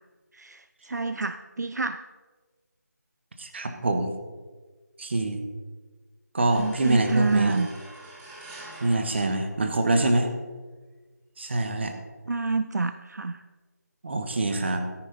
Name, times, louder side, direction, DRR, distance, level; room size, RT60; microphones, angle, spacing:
voice 1, 0.3-2.0 6.5-7.7 12.3-13.4, right 3 dB, 70° right, 12 dB, 0.5 m, -28 dB
voice 2, 3.4-4.1 5.0-5.4 6.3-7.6 8.8-10.3 11.4-11.9 14.0-14.8, right 2 dB, 40° right, 6 dB, 1.3 m, -25 dB
sound 1, 6.5-10.1, right 2 dB, 10° right, 1.3 m, -46 dB
13.5 x 10.5 x 4.0 m, 1.3 s
figure-of-eight pair, 165°, 10 cm